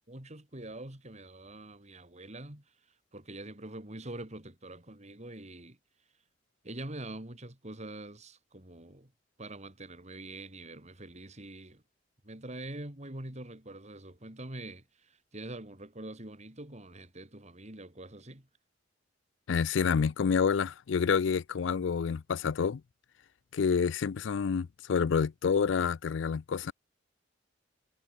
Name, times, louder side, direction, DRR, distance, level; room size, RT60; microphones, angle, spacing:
voice 1, 0.1-2.6 3.1-5.8 6.6-9.1 9.4-11.8 12.2-18.5, right 1 dB, 40° right, 3.6 m, -44 dB
voice 2, 19.5-22.8 23.5-26.7, left 6 dB, 80° left, 0.4 m, -28 dB
head